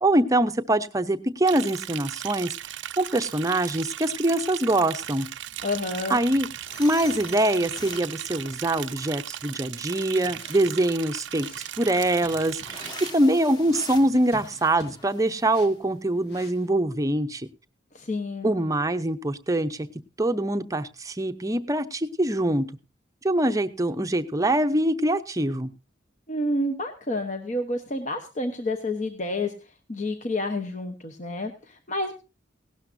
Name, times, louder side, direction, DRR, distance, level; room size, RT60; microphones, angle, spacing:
voice 1, 0.0-2.6 3.0-5.3 6.1-6.5 6.8-11.5 11.8-12.8 13.1-17.5 18.4-19.9 20.2-22.7 23.2-25.7, right 1 dB, 15° right, 10 dB, 0.7 m, -24 dB
Liquid, 1.5-13.1, right 12 dB, 65° right, 0.5 m, -37 dB
voice 2, 5.6-6.2 17.9-18.6 26.3-29.5 29.9-32.1, left 1 dB, 40° left, 6 dB, 1.0 m, -29 dB
sound 1, 6.6-9.7 12.6-15.7, left 1 dB, 20° left, 1.4 m, -44 dB
sound 2, 10.2-16.7, left 2 dB, 55° left, 1.9 m, -49 dB
17.5 x 12.0 x 2.7 m, 0.31 s
head